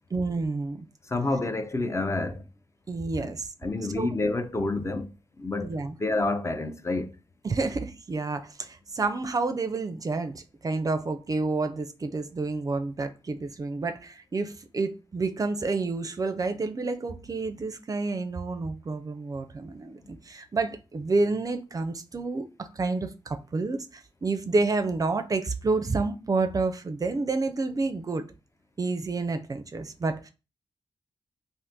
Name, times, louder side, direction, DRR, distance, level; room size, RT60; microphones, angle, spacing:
voice 1, 0.1-0.9 2.9-3.5 4.0-4.1 5.6-6.0 7.4-28.3 28.8-30.3, right 3 dB, 40° right, 0.4 m, -29 dB
voice 2, 1.1-2.5 3.2-3.3 3.6-7.1, left 2 dB, 30° left, 0.4 m, -29 dB
2.6 x 2.5 x 3.4 m
cardioid pair, 65°, 10 cm